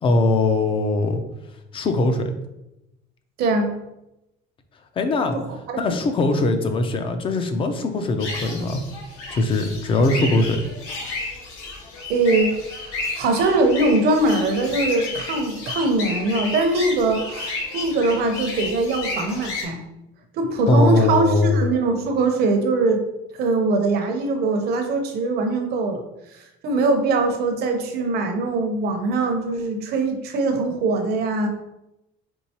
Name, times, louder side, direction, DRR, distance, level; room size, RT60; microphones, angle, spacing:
voice 1, 0.0-1.2 1.7-2.3 5.0-5.4 5.8-8.8 9.3-10.6 20.7-21.6, left 2 dB, 25° left, 7 dB, 0.4 m, -21 dB
voice 2, 3.4-3.8 5.3-5.8 12.1-12.6 12.9-19.8 20.3-23.1 23.3-26.0 26.6-31.5, right 2 dB, 50° right, 4 dB, 0.7 m, -22 dB
sound 1, 8.2-19.6, left 3 dB, 80° left, 1.4 m, -32 dB
4.5 x 3.7 x 2.8 m, 0.91 s
cardioid pair, 150°, 21 cm